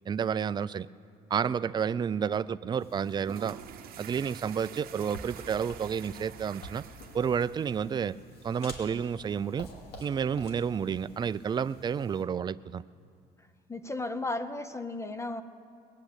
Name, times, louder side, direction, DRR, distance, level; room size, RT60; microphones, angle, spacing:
voice 1, 0.1-0.9 1.3-3.6 4.0-6.8 7.1-8.2 8.4-9.7 10.0-12.8, right 7 dB, 25° right, 15 dB, 0.3 m, -30 dB
sound 1, 2.8-12.2, left 1 dB, 70° left, 2.5 m, -50 dB
sound 2, 3.1-8.2, right 10 dB, 60° right, 0.8 m, -47 dB
voice 2, 13.7-15.4, left 2 dB, 15° left, 11 dB, 0.6 m, -34 dB
20.0 x 8.5 x 8.0 m, 2.3 s
cardioid pair, 110°, 17 cm